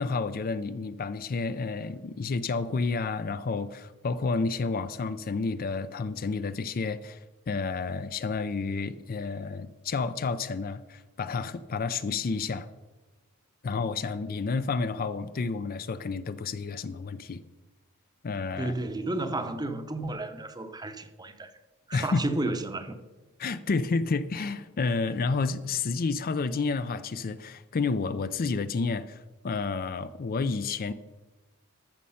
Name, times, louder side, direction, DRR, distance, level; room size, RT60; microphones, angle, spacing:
voice 1, 0.0-12.7 13.6-17.4 18.2-18.7 21.9-22.3 23.4-30.9, left 4 dB, 40° left, 0.4 m, -30 dB
voice 2, 18.6-21.5 21.9-23.0, right 2 dB, 20° right, 0.8 m, -32 dB
14.0 x 6.4 x 5.6 m
head